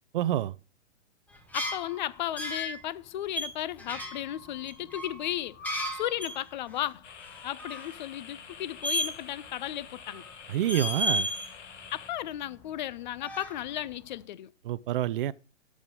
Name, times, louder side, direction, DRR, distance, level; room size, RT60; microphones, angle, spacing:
voice 1, 0.1-0.6 10.5-11.3 14.6-15.3, right 12 dB, 45° right, 0.5 m, -27 dB
sound 1, 1.4-2.8 3.4-6.4 6.7-6.8 7.2-8.0 8.8-9.5 9.8-10.3 10.6-11.5 11.9-12.9 13.2-13.9, equal, 5° left, 1.2 m, -34 dB
voice 2, 1.5-5.6 5.9-7.0 7.4-10.2 11.9-14.5, left 13 dB, 40° left, 0.4 m, -35 dB
sound 2, 7.0-12.1, left 7 dB, 70° left, 1.5 m, -48 dB
16.0 x 6.3 x 3.6 m
hypercardioid pair, 135°, 36 cm